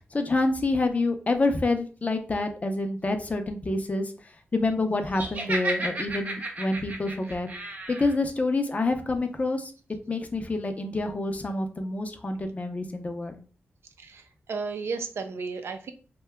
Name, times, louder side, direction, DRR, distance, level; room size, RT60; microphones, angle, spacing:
voice 1, 0.1-4.1 4.5-7.5 7.9-9.7 10.1-13.4, left 2 dB, 35° left, 6 dB, 0.5 m, -27 dB
Laughter, 5.1-8.1, right 2 dB, 40° right, 0.8 m, -33 dB
voice 2, 14.5-15.9, right 4 dB, 75° right, 7 dB, 0.4 m, -33 dB
2.8 x 2.2 x 3.3 m, 0.37 s
cardioid pair, 80°, 4 cm